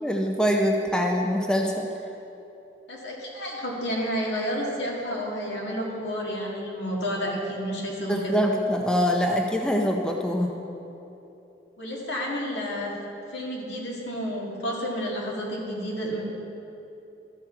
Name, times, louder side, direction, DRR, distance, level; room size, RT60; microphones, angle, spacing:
voice 1, 0.0-1.9 8.1-10.5, equal, 5° left, 1 dB, 0.5 m, -24 dB
voice 2, 2.9-8.4 11.8-12.9 13.3-16.2, equal, 85° left, -3 dB, 2.0 m, -30 dB
12.5 x 7.4 x 4.5 m, 2.9 s
head